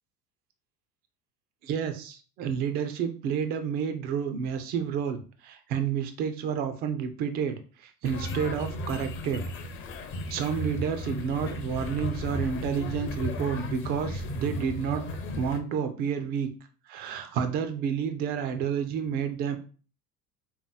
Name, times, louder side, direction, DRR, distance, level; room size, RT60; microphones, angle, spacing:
voice 1, 1.6-9.4 10.3-15.1 15.4-16.5 16.9-19.6, right 7 dB, 25° right, 8 dB, 0.3 m, -30 dB
sound 1, 8.0-15.6, left 1 dB, 25° left, 0.6 m, -35 dB
3.5 x 3.0 x 3.7 m, 0.38 s
figure-of-eight pair, 70°, 47 cm